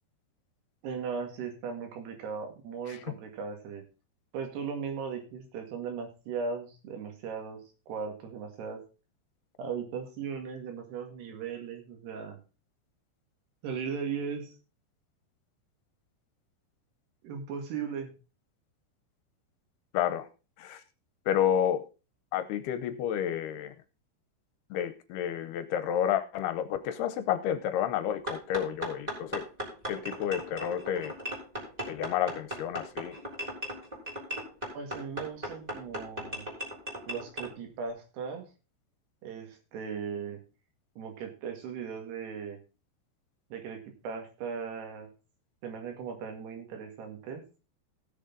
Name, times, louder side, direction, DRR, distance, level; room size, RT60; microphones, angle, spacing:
voice 1, 0.8-3.8 4.3-8.8 9.6-12.4 13.6-14.6 17.2-18.1 34.7-36.5 37.1-38.5 39.2-40.4 41.0-42.6 43.5-45.1 45.6-47.4, right 6 dB, 75° right, 4 dB, 4.0 m, -37 dB
voice 2, 19.9-20.3 20.6-20.8 21.3-21.8 22.3-23.7 24.7-29.4 29.9-31.1 31.9-33.2, left 10 dB, 80° left, 11 dB, 2.6 m, -30 dB
sound 1, 28.3-37.5, equal, 10° right, 2.9 m, -37 dB
16.5 x 6.6 x 3.9 m, 0.32 s
omnidirectional pair, 4.9 m